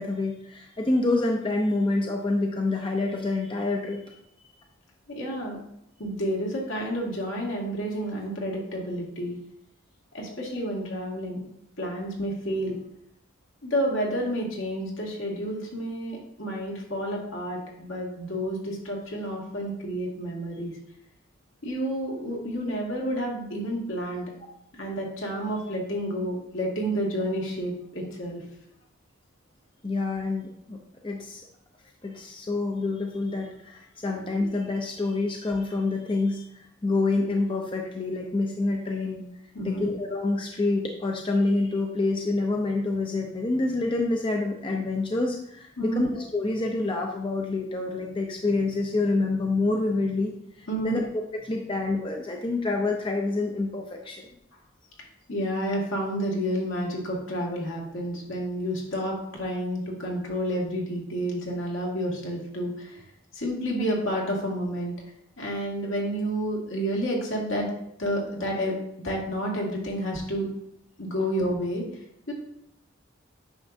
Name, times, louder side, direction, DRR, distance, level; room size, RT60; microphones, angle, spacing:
voice 1, 0.0-4.1 29.8-30.8 31.0-31.4 32.0-39.2 39.6-50.3 50.6-54.3, left 2 dB, 25° left, 1 dB, 0.6 m, -27 dB
voice 2, 5.1-5.6 6.0-9.4 10.1-11.4 11.8-12.8 13.6-20.8 21.6-24.3 24.7-28.4 39.5-39.9 45.8-46.1 50.7-51.0 55.3-63.0 63.3-64.9 65.4-67.7 68.0-68.7 69.0-70.5 71.0-72.3, equal, 70° left, -2 dB, 2.1 m, -30 dB
9.3 x 5.9 x 2.7 m, 0.77 s
head